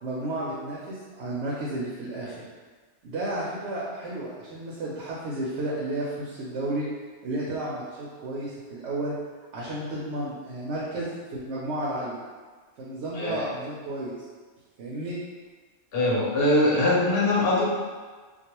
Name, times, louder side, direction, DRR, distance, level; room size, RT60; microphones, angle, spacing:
voice 1, 0.0-2.4 3.0-6.9 7.2-9.1 9.5-12.2 12.8-14.2 14.8-15.2, right 1 dB, 75° right, -6 dB, 0.8 m, -32 dB
voice 2, 15.9-17.6, left 1 dB, 60° left, -6 dB, 0.9 m, -22 dB
2.3 x 2.3 x 2.9 m, 1.4 s
omnidirectional pair, 1.2 m